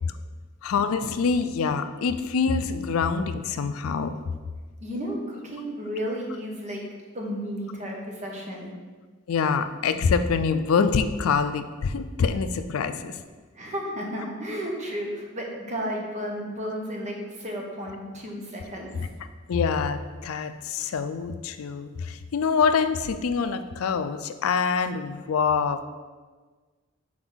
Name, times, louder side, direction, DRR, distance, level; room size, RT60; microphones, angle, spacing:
voice 1, 0.6-4.1 9.3-13.1 19.5-25.8, left 5 dB, 80° left, 10 dB, 0.4 m, -25 dB
voice 2, 4.8-6.8 7.1-8.7 13.5-19.1, equal, 35° right, 0 dB, 1.0 m, -33 dB
6.2 x 3.9 x 3.9 m, 1.4 s
head